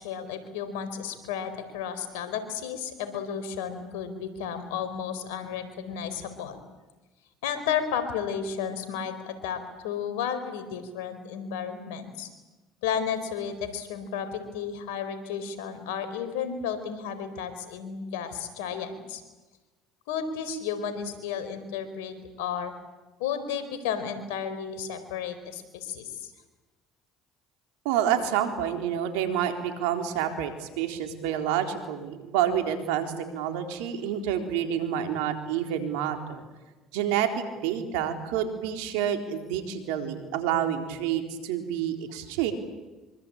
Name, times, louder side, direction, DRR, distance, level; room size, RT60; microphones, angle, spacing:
voice 1, 0.0-6.6 7.4-12.3 12.8-19.2 20.1-22.7 23.2-26.3, left 7 dB, 85° left, 9 dB, 4.5 m, -33 dB
voice 2, 27.8-36.5 36.9-42.5, right 9 dB, 80° right, 5 dB, 4.0 m, -28 dB
25.5 x 25.0 x 8.9 m, 1.2 s
supercardioid pair, 80°, 0 cm